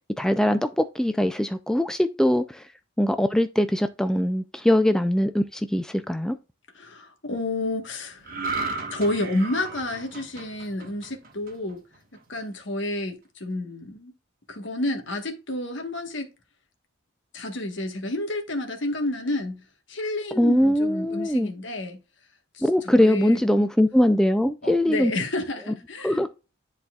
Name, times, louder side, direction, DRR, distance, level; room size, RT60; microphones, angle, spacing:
voice 1, 0.2-2.7 3.0-6.4 20.4-21.5 22.6-25.1 26.0-26.3, left 1 dB, 5° left, 0.3 m, -22 dB
voice 2, 6.7-8.3 8.9-11.8 12.3-14.1 14.5-16.3 17.3-22.0 22.5-23.4 24.6-26.3, left 1 dB, 65° left, 1.3 m, -30 dB
sound 1, 8.2-11.7 12.1-12.4, right 3 dB, 45° right, 1.4 m, -34 dB
10.0 x 4.1 x 2.3 m
head